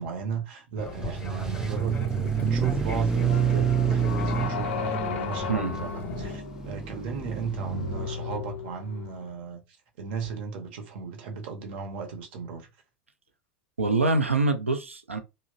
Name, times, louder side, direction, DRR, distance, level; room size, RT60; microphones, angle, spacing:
voice 1, 0.0-9.6 10.0-12.7, right 5 dB, 55° right, 0.8 m, -36 dB
Fixed-wing aircraft airplane, 0.8-6.4, left 1 dB, 20° left, 0.7 m, -38 dB
sound 1, 1.0-8.1, right 7 dB, 10° right, 0.3 m, -28 dB
sound 2, 3.3-9.3, left 7 dB, 65° left, 0.4 m, -36 dB
voice 2, 5.5-5.8 13.8-15.2, right 3 dB, 90° right, 0.4 m, -25 dB
2.9 x 2.0 x 2.4 m
figure-of-eight pair, 85°, 7 cm